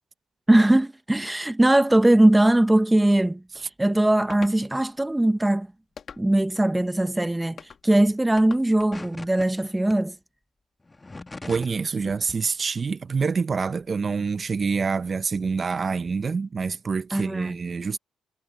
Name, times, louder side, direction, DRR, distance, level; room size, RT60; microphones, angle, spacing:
voice 1, 0.5-5.7 6.2-10.1 17.1-17.6, right 1 dB, 10° right, 0.8 m, -20 dB
sound 1, 4.3-4.6 6.0-6.5 7.6-7.8 8.4-9.1, left 7 dB, 50° left, 2.2 m, -43 dB
sound 2, 8.9-9.5 9.9-10.0 10.8-11.8 12.1-12.4, left 2 dB, 20° left, 2.0 m, -40 dB
voice 2, 11.4-18.0, right 5 dB, 35° right, 0.9 m, -26 dB
cardioid pair, 90°, 0 cm